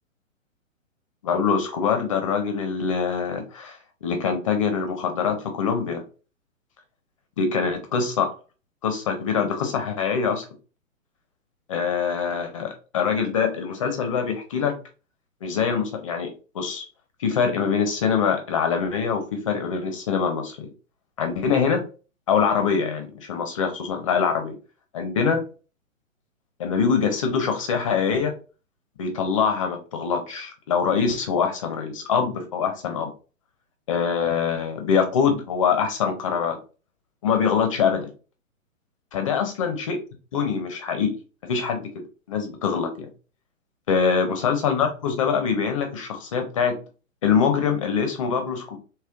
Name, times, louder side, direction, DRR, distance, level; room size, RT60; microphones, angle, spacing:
voice 1, 1.2-6.0 7.4-8.3 8.8-10.4 11.7-14.7 15.4-16.3 16.5-16.9 17.2-20.7 21.2-21.8 22.3-24.5 24.9-25.4 26.6-28.3 29.0-33.1 33.9-36.6 37.2-38.1 39.1-40.0 40.3-41.1 41.4-41.9 42.3-43.1 43.9-46.7 47.2-48.8, left 6 dB, 25° left, 5 dB, 0.4 m, -24 dB
3.0 x 2.9 x 2.3 m, 0.35 s
figure-of-eight pair, 125°, 40 cm